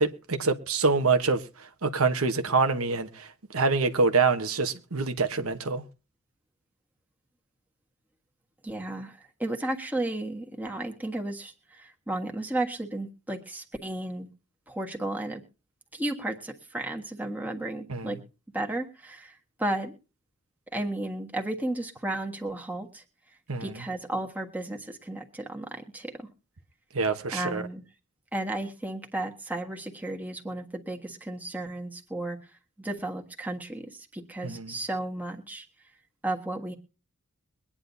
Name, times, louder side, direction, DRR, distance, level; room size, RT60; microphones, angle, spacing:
voice 1, 0.0-3.3 3.5-5.8 17.9-18.1 23.5-23.7 26.9-27.6 34.4-34.7, right 4 dB, 80° right, 1.2 m, -26 dB
voice 2, 8.6-14.3 14.7-15.4 15.9-18.2 18.5-19.9 20.7-23.0 23.6-26.3 27.3-27.8 28.3-32.5 32.8-35.6 36.2-36.8, right 1 dB, 10° right, 1.5 m, -33 dB
22.5 x 9.9 x 2.7 m
head